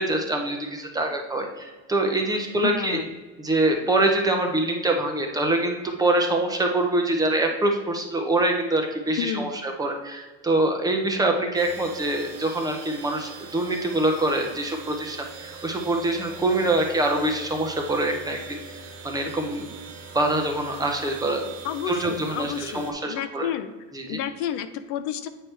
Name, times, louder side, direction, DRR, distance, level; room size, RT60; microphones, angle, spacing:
voice 1, 0.0-3.0 3.4-18.6 19.0-19.7 20.1-21.5 21.9-23.5 23.9-24.2, right 2 dB, 10° right, 2 dB, 0.6 m, -25 dB
voice 2, 2.6-3.1 9.2-9.5 21.6-23.7 24.1-25.3, left 9 dB, 50° left, 10 dB, 0.5 m, -30 dB
sound 1, 11.5-22.9, right 4 dB, 65° right, 1.3 m, -42 dB
8.7 x 4.6 x 3.2 m, 1.3 s
cardioid pair, 155°, 36 cm